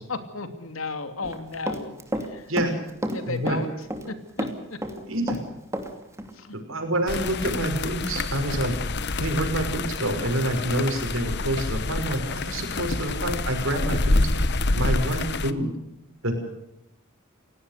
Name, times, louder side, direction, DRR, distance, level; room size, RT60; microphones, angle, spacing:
voice 1, 0.1-2.5 3.1-3.7 4.1-4.8 6.3-6.6, left 3 dB, 85° left, 8 dB, 2.8 m, -34 dB
Run, 1.2-2.3 2.6-4.1 4.4-5.9 6.2-6.3, right 1 dB, 15° right, 2.7 m, -30 dB
voice 2, 3.3-3.6 5.1-5.4 6.5-8.8 9.2-14.3 14.7-15.7 16.2-16.3, right 1 dB, 75° right, 5 dB, 6.0 m, -27 dB
sound 1, 7.1-15.5, left 2 dB, 60° left, 1.2 m, -27 dB
29.0 x 17.5 x 6.8 m, 0.85 s
head